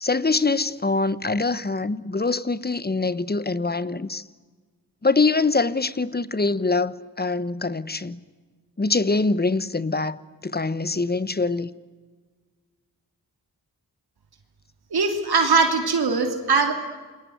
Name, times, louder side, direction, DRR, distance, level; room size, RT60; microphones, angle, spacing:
voice 1, 0.0-4.2 5.0-8.2 8.8-11.7, left 3 dB, 25° left, 1.1 m, -24 dB
voice 2, 14.9-16.7, right 4 dB, 80° right, 3.2 m, -21 dB
28.0 x 22.0 x 9.5 m
wide cardioid pair, 85°, 38 cm